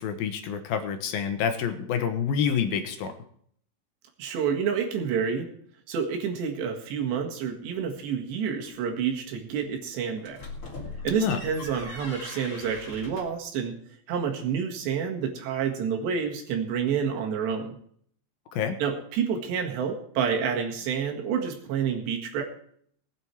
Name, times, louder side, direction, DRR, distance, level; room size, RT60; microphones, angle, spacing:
voice 1, 0.0-3.1 11.2-11.4 18.5-18.8, left 7 dB, 70° left, 7 dB, 2.6 m, -27 dB
voice 2, 4.2-5.5 5.9-10.4 11.0-13.8 14.1-17.8 18.8-22.4, right 7 dB, 90° right, 2 dB, 4.1 m, -29 dB
sound 1, 10.2-13.4, left 3 dB, 35° left, 3.5 m, -40 dB
19.0 x 8.7 x 4.6 m, 0.63 s
omnidirectional pair, 4.8 m